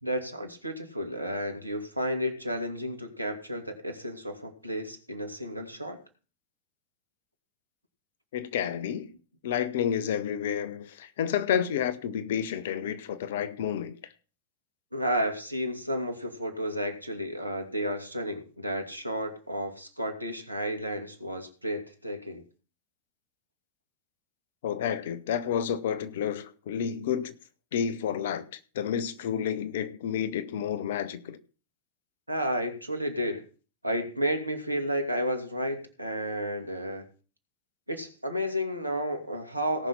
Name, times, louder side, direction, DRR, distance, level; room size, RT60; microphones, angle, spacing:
voice 1, 0.0-6.0 14.9-22.4 32.3-33.5 33.8-37.0 37.9-39.9, equal, 85° right, 2.4 m, -32 dB
voice 2, 8.3-9.1 9.4-14.1 24.6-27.3 27.7-31.4, left 8 dB, 55° left, 1.1 m, -30 dB
17.5 x 6.0 x 5.7 m
figure-of-eight pair, 90°, 0 cm